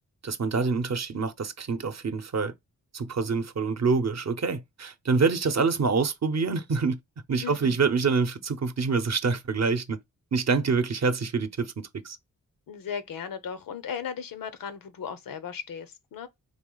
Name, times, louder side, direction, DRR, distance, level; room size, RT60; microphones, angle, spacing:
voice 1, 0.2-2.5 2.9-7.0 7.3-10.0 10.3-12.2, right 4 dB, 50° right, 0.7 m, -26 dB
voice 2, 7.4-7.8 12.7-16.3, left 7 dB, 90° left, 0.7 m, -36 dB
3.9 x 3.0 x 3.9 m
cardioid pair, 60°, 33 cm